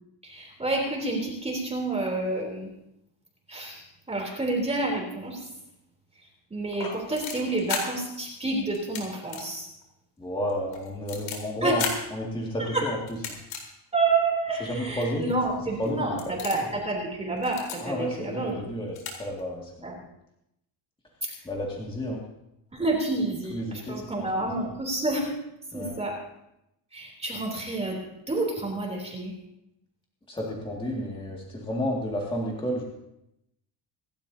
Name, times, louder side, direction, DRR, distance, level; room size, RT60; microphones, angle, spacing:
voice 1, 0.2-2.7 3.5-5.4 6.5-9.7 11.6-11.8 12.7-12.8 13.9-18.7 19.8-19.9 22.7-25.3 25.7-26.1 26.9-28.0 28.3-29.3, right 2 dB, 15° right, -2 dB, 3.3 m, -29 dB
sound 1, 6.7-7.8 8.7-9.0 9.3-9.4 9.8-9.9 10.5-11.4 11.8-12.0 13.1-13.6 14.3-14.4 15.2-15.3 15.7-15.9 16.2-16.7 17.4-17.8 18.6-18.7 18.9-19.1 19.4-19.5, left 6 dB, 85° left, 4.3 m, -33 dB
voice 2, 10.2-11.9 12.1-13.2 14.6-15.4 15.8-16.2 16.5-16.6 17.8-20.0 21.4-22.2 23.5-24.7 25.7-26.0 30.3-32.8, equal, 10° left, -3 dB, 2.2 m, -31 dB
26.5 x 12.0 x 2.8 m, 0.84 s
cardioid pair, 145°, 47 cm